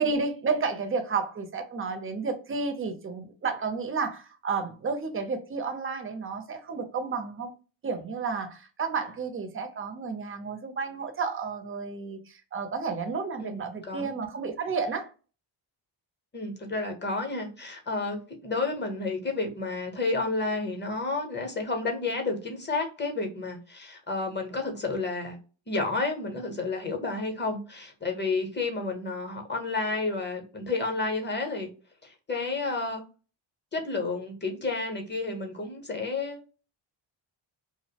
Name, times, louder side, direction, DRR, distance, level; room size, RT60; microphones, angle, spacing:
voice 1, 0.0-7.5 7.8-15.1, right 4 dB, 30° right, 0.5 m, -31 dB
voice 2, 13.4-14.1 16.3-25.4 25.7-31.7 32.0-33.0 33.7-36.4, left 3 dB, 20° left, 0.7 m, -31 dB
2.5 x 2.0 x 2.8 m
wide cardioid pair, 115°, 48 cm